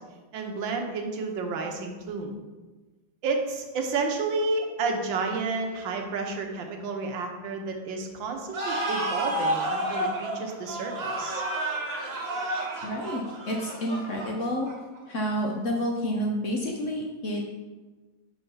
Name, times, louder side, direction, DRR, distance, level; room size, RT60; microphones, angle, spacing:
voice 1, 0.3-2.3 3.2-11.4, right 3 dB, 90° right, 3 dB, 1.6 m, -31 dB
sound 1, 8.5-15.0, right 1 dB, 40° right, 1.3 m, -31 dB
voice 2, 12.8-14.7 15.1-17.4, equal, 60° left, 0 dB, 0.8 m, -29 dB
5.4 x 4.5 x 5.5 m, 1.2 s
omnidirectional pair, 2.0 m